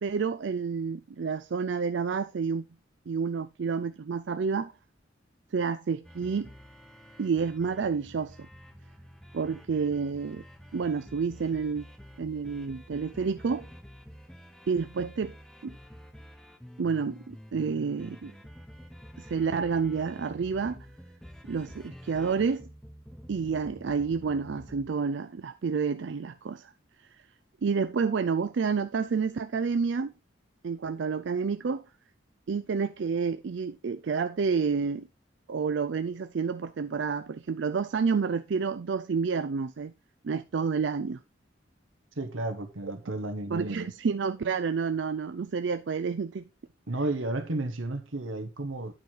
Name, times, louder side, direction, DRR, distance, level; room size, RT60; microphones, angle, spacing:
voice 1, 0.0-2.6 3.1-4.7 5.5-6.5 7.2-8.4 9.3-10.4 10.7-11.9 12.2-13.7 14.7-15.3 15.6-15.8 16.8-18.3 19.2-20.9 21.5-22.7 23.3-26.7 27.1-27.2 27.6-30.1 30.6-31.8 32.5-35.1 35.5-39.9 40.2-41.2 43.5-46.4, right 5 dB, 65° right, 0.4 m, -29 dB
sound 1, 6.0-24.9, equal, 5° left, 0.9 m, -49 dB
voice 2, 42.2-43.9 46.9-48.9, right 2 dB, 90° right, 1.4 m, -32 dB
9.4 x 4.8 x 4.5 m
head